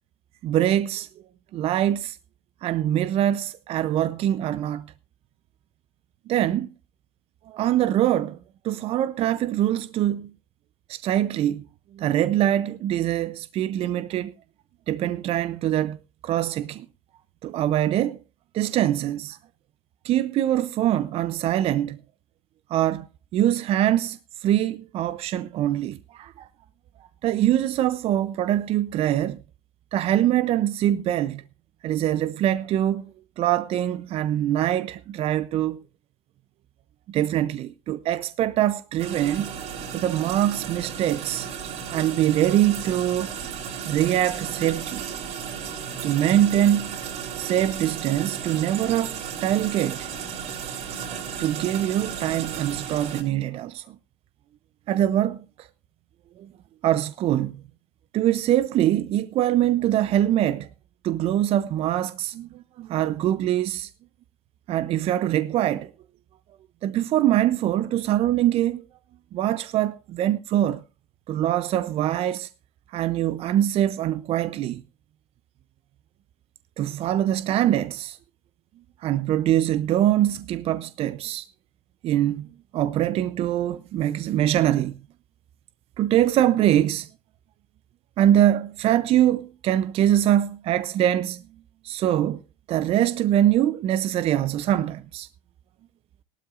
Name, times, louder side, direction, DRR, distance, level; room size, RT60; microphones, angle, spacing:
voice 1, 0.4-1.1 1.5-2.2 2.6-4.9 6.3-6.7 7.5-8.4 8.6-10.3 10.9-11.7 12.0-14.3 14.9-16.0 16.2-16.9 17.4-18.2 18.5-19.4 20.0-22.0 22.7-23.1 23.3-26.5 27.2-29.4 29.9-31.4 31.8-33.0 33.4-35.8 37.1-39.5 39.9-41.5 41.9-43.3 43.8-45.0 46.0-47.0 47.4-50.1 51.4-53.8 54.9-55.7 56.8-57.6 58.1-60.7 61.0-63.9 64.7-65.9 66.8-68.8 69.3-70.8 71.3-72.5 72.9-74.8 76.8-78.2 79.0-81.5 82.0-82.5 82.7-85.0 86.0-87.1 88.2-91.4 91.8-92.4 92.7-95.3, right 12 dB, 50° right, 0.6 m, -23 dB
sound 1, 39.0-53.2, right 7 dB, 65° right, 7.1 m, -34 dB
18.5 x 12.5 x 2.5 m
supercardioid pair, 90°, 13 cm